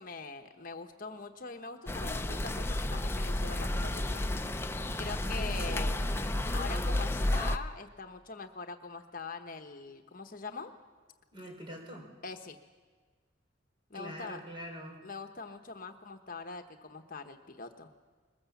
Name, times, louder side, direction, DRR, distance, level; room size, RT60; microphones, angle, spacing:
voice 1, 0.0-4.4 5.0-6.0 6.5-10.7 12.2-12.6 13.9-14.4 15.0-17.9, left 4 dB, 50° left, 6 dB, 1.0 m, -43 dB
sound 1, 1.9-7.6, left 1 dB, 15° left, 0.6 m, -32 dB
voice 2, 5.3-5.9 11.3-12.1 13.9-15.0, equal, 30° right, 1 dB, 4.3 m, -44 dB
22.0 x 21.0 x 7.2 m, 1.5 s
head